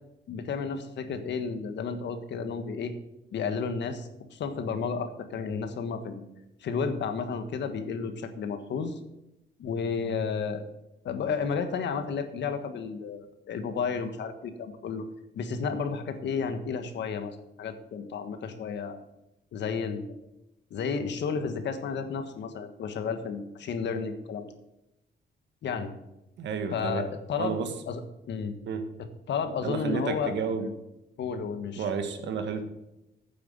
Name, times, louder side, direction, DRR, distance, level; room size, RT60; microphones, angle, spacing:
voice 1, 0.3-2.9 3.3-6.2 6.6-9.0 9.6-10.6 11.0-15.0 15.3-19.0 19.5-20.1 20.7-24.5 25.6-25.9 26.7-27.6 27.9-28.0 28.3-28.5 29.3-30.7 31.2-31.9, left 5 dB, 75° left, 9 dB, 1.5 m, -32 dB
voice 2, 26.4-27.0 27.4-27.7 28.7-28.9 29.6-30.7 31.8-32.6, right 5 dB, 75° right, 7 dB, 1.7 m, -31 dB
9.5 x 7.7 x 7.8 m, 0.91 s
cardioid pair, 110°, 19 cm